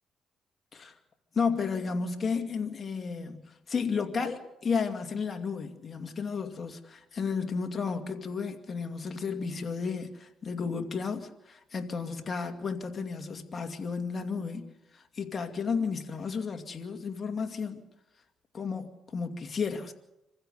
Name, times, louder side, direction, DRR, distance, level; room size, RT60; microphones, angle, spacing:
voice 1, 1.3-14.7 14.9-17.8 18.5-19.9, left 5 dB, 40° left, 2.3 m, -33 dB
25.5 x 15.5 x 6.8 m
cardioid pair, 90°, 0 cm